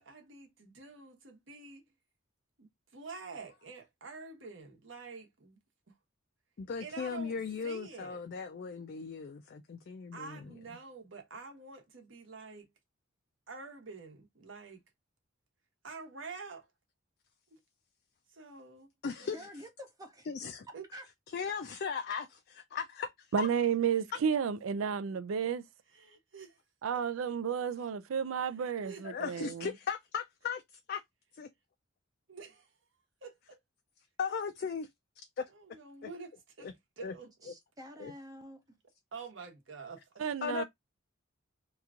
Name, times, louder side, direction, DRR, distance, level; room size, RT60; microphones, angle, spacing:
voice 1, 0.0-1.8 2.6-5.6 5.9-6.0 6.8-8.2 10.1-12.7 13.5-14.8 15.8-16.7 17.5-17.6 18.3-18.9 19.2-19.5 20.7-20.8 25.9-26.6 28.5-29.0 32.3-32.8 33.2-33.6 35.5-36.7 37.0-37.5 39.1-40.2, right 4 dB, 65° right, 1.1 m, -48 dB
voice 2, 6.6-10.8 19.0-19.7 20.2-21.0 21.3-23.7 29.0-31.0 31.4-31.5 34.2-34.9 35.4-35.5 36.0-36.1 36.6-36.7 37.0-37.2 37.4-37.5 38.0-38.1 40.4-40.6, left 6 dB, 50° left, 0.4 m, -38 dB
voice 3, 19.2-20.3 20.7-21.0 37.4-38.8, equal, 20° right, 0.4 m, -49 dB
voice 4, 23.3-25.6 26.8-29.7 40.2-40.6, right 7 dB, 80° right, 0.4 m, -32 dB
2.9 x 2.3 x 3.6 m
head